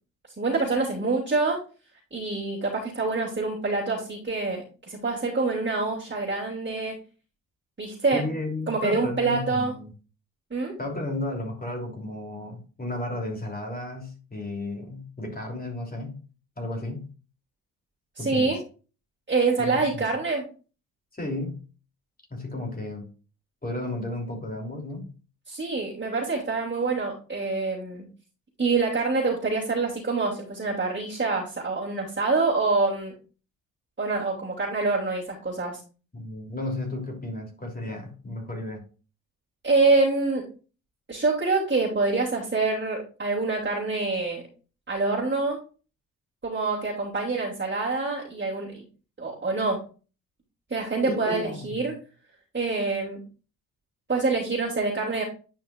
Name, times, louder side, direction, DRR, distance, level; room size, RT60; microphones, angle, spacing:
voice 1, 0.4-1.6 2.1-6.9 7.8-8.2 8.7-9.7 10.5-10.7 18.2-18.6 19.3-20.4 25.5-28.0 28.6-33.1 34.0-35.8 39.6-40.4 41.1-44.4 44.9-45.6 46.4-48.8 49.2-49.8 50.7-51.9 52.5-53.2 54.1-55.2, right 3 dB, 25° right, 3.1 m, -26 dB
voice 2, 8.1-9.9 10.8-16.2 16.6-17.1 18.2-18.5 19.6-20.1 21.1-21.6 22.3-23.1 23.6-25.1 36.1-38.8 51.1-51.9, left 2 dB, 20° left, 3.2 m, -33 dB
10.5 x 5.2 x 2.6 m
hypercardioid pair, 40°, 44 cm